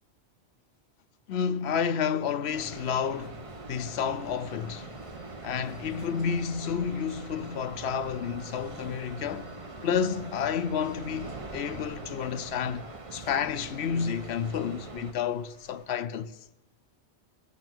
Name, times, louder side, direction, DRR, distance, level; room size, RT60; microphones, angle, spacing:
voice 1, 1.3-3.4 3.7-4.9 5.4-9.5 9.8-16.4, left 7 dB, 70° left, 0.9 m, -30 dB
sound 1, 2.5-15.1, right 3 dB, 30° right, 0.9 m, -43 dB
sound 2, 4.2-15.9, left 1 dB, 75° right, 3.1 m, -56 dB
21.0 x 8.6 x 6.1 m
omnidirectional pair, 1.1 m